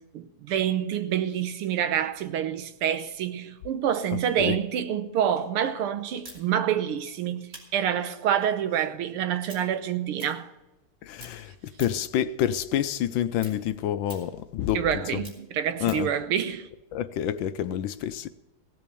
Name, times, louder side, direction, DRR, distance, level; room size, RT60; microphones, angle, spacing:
voice 1, 0.0-10.5 14.7-16.7, right 9 dB, 90° right, 1.8 m, -27 dB
Pistole - Schlitten schieben, 6.2-10.9 11.1-12.2 12.5-16.2, right 1 dB, 30° right, 3.3 m, -48 dB
voice 2, 11.0-14.9 15.1-15.2 15.8-16.1 16.9-18.3, left 10 dB, 75° left, 1.2 m, -28 dB
17.0 x 7.8 x 6.9 m
omnidirectional pair, 2.3 m